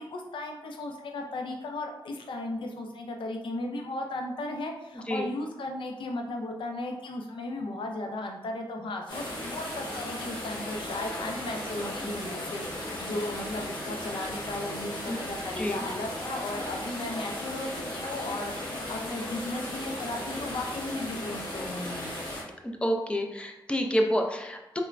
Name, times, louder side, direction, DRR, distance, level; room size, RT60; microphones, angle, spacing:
voice 1, 0.0-22.2, left 2 dB, 80° left, 3 dB, 0.4 m, -36 dB
voice 2, 4.9-5.3 15.1-15.2 15.6-15.8 22.6-24.8, equal, 15° left, 2 dB, 0.3 m, -29 dB
sound 1, 9.1-22.4, left 1 dB, 65° left, 0.8 m, -36 dB
3.1 x 2.1 x 2.4 m, 0.92 s
wide cardioid pair, 110°, 8 cm